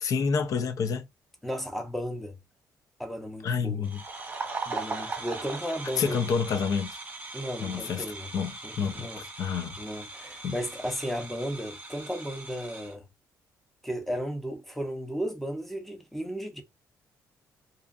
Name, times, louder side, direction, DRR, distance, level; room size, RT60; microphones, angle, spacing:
voice 1, 0.0-1.1 3.4-4.0 6.0-7.0 7.6-8.1 8.3-9.8 10.4-10.6, left 6 dB, 55° left, 0.5 m, -28 dB
voice 2, 1.4-2.4 3.0-3.9 4.4-6.2 7.3-8.3 8.6-9.2 9.8-13.1 13.8-16.6, equal, 5° left, 0.7 m, -34 dB
sound 1, 3.8-12.9, right 3 dB, 25° right, 1.0 m, -39 dB
2.5 x 2.4 x 2.4 m
cardioid pair, 130°, 7 cm